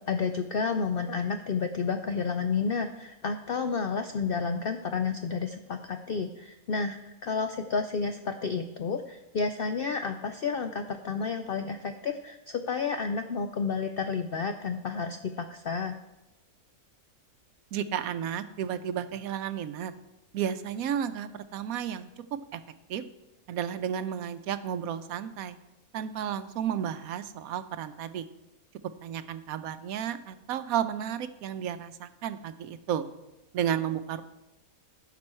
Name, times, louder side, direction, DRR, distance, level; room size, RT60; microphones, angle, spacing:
voice 1, 0.1-16.0, left 5 dB, 70° left, 7 dB, 0.5 m, -31 dB
voice 2, 17.7-19.9 20.3-22.1 22.5-22.6 22.9-23.0 23.5-25.6 25.9-28.3 29.0-33.1 33.5-34.2, right 9 dB, 75° right, 12 dB, 1.0 m, -32 dB
15.0 x 6.1 x 4.3 m, 0.98 s
omnidirectional pair, 1.6 m